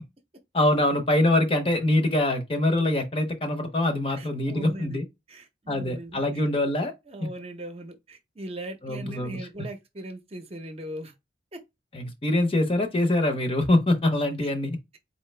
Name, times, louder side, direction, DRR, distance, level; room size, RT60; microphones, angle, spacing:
voice 1, 0.5-5.0 5.7-6.9 8.8-9.4 11.9-14.8, left 1 dB, 30° left, 0.6 m, -24 dB
voice 2, 4.1-5.0 5.3-6.2 7.1-11.1 11.5-11.6, right 1 dB, 30° right, 0.7 m, -39 dB
4.2 x 2.7 x 3.2 m
head